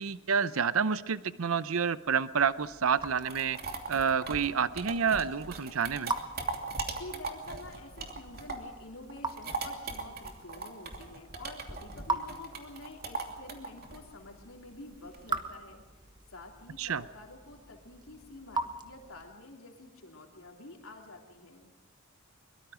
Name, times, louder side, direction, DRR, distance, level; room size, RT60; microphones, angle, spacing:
voice 1, 0.0-3.6 3.9-6.1 16.8-17.0, right 6 dB, 80° right, 15 dB, 0.7 m, -29 dB
Raindrop / Drip, 2.3-19.5, right 3 dB, 20° right, 1.3 m, -42 dB
sound 1, 3.0-8.8 9.1-15.4, right 3 dB, 50° right, 2.8 m, -39 dB
voice 2, 6.9-21.7, left 2 dB, 85° left, 1 dB, 3.3 m, -49 dB
23.0 x 22.5 x 5.0 m, 1.2 s
head